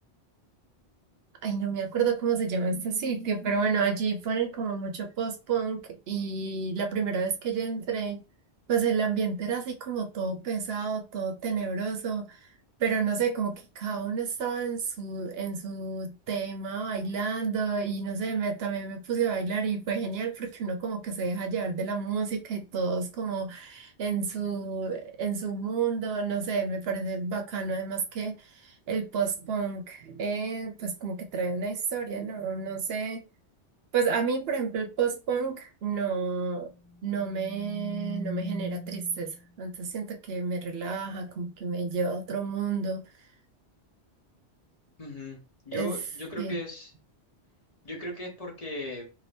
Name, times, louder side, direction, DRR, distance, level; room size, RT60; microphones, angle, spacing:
voice 1, 1.4-8.2 8.7-12.4 12.8-33.2 33.9-36.7 37.0-43.0 45.7-45.9 46.4-46.6, right 5 dB, 70° right, 0.8 m, -30 dB
sound 1, 36.9-39.4, left 1 dB, 90° left, 1.2 m, -39 dB
voice 2, 45.0-45.4 45.7-46.9 47.8-49.0, left 1 dB, 40° left, 0.8 m, -37 dB
2.6 x 2.6 x 3.3 m
omnidirectional pair, 1.1 m